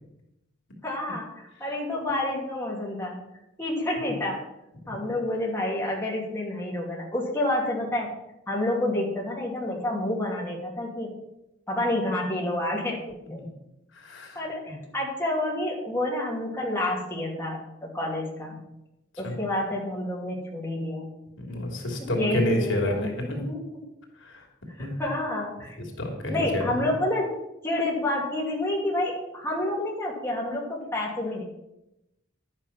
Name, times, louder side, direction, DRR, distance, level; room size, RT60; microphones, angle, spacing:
voice 1, 0.8-3.2 3.6-4.4 4.9-8.1 8.5-11.1 11.7-13.4 14.3-18.6 19.2-21.1 21.5-21.7 22.0-23.8 24.8-25.7 26.3-27.4 27.6-31.4, left 1 dB, 10° left, -4 dB, 2.9 m, -29 dB
voice 2, 13.9-14.8 19.2-19.3 21.4-23.5 24.2-24.5 24.8-25.0 26.0-26.8, left 1 dB, 80° left, 0 dB, 3.0 m, -29 dB
11.5 x 8.8 x 5.9 m, 0.90 s
head